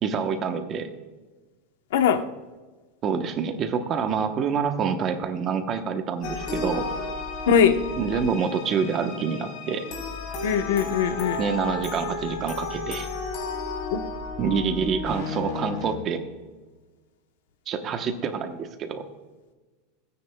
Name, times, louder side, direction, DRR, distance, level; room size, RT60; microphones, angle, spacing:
voice 1, 0.0-0.9 3.0-6.9 8.0-9.9 11.4-13.1 14.4-16.2 17.7-19.0, right 6 dB, 25° right, 7 dB, 1.0 m, -27 dB
voice 2, 1.9-2.2 7.5-7.8 10.4-11.4 13.9-14.0, left 7 dB, 80° left, 8 dB, 1.0 m, -20 dB
sound 1, 6.2-16.0, left 3 dB, 50° left, 4.0 m, -33 dB
29.0 x 9.8 x 2.3 m, 1.3 s
supercardioid pair, 170°, 0 cm